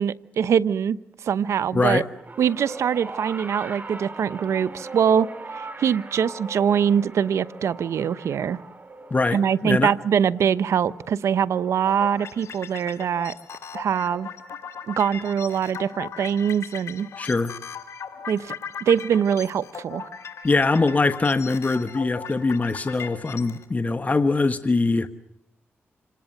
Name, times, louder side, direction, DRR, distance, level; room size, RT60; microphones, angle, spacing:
voice 1, 0.0-2.0 2.4-8.6 9.3-13.3 13.7-14.3 14.9-17.1 18.3-18.5 18.8-20.1, right 8 dB, 80° right, 16 dB, 0.9 m, -23 dB
voice 2, 1.7-2.1 9.1-9.9 17.2-17.5 20.4-25.1, left 3 dB, 30° left, 10 dB, 1.3 m, -22 dB
sound 1, 2.2-12.6 13.6-13.7, right 3 dB, 35° right, 5.0 m, -40 dB
sound 2, 11.9-23.6, left 6 dB, 70° left, 2.7 m, -38 dB
27.0 x 19.0 x 7.9 m, 0.82 s
cardioid pair, 60°, 5 cm